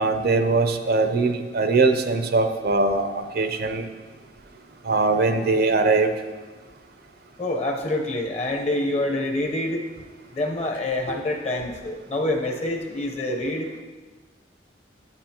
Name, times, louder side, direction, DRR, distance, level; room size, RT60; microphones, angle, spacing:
voice 1, 0.0-3.9 4.8-6.1, right 3 dB, 60° right, 7 dB, 0.6 m, -21 dB
voice 2, 7.4-9.8 10.3-13.7, left 1 dB, 40° left, 2 dB, 0.9 m, -26 dB
9.8 x 8.8 x 2.9 m, 1.3 s
head